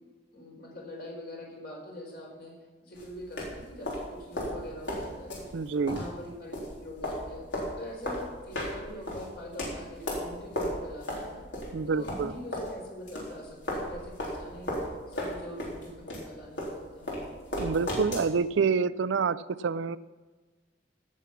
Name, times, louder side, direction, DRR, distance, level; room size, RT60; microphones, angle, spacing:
voice 1, 0.0-2.5 2.8-5.4 5.9-7.4 7.8-11.4 11.9-14.8 15.1-17.3, left 1 dB, 60° left, -1 dB, 4.4 m, -43 dB
sound 1, 2.9-12.7 13.1-18.3, equal, 80° left, 4.1 m, -35 dB
voice 2, 5.5-6.0 11.7-12.3 17.6-20.0, right 5 dB, 90° right, 16 dB, 0.4 m, -27 dB
17.0 x 7.3 x 5.9 m, 1.4 s
head